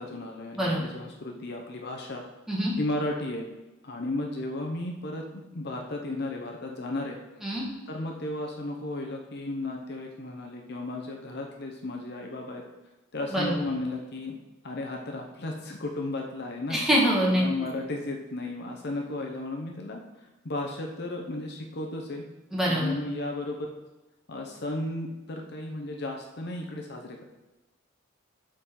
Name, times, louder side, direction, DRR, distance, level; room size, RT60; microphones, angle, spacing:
voice 1, 0.0-2.3 2.8-3.5 3.8-7.2 7.9-12.6 13.1-14.4 14.6-16.8 17.3-22.2 22.7-23.7 24.3-27.2, left 2 dB, 50° left, 1 dB, 0.8 m, -34 dB
voice 2, 16.7-17.4 22.5-22.9, equal, ahead, -6 dB, 1.7 m, -24 dB
12.5 x 4.3 x 3.8 m, 1.1 s
head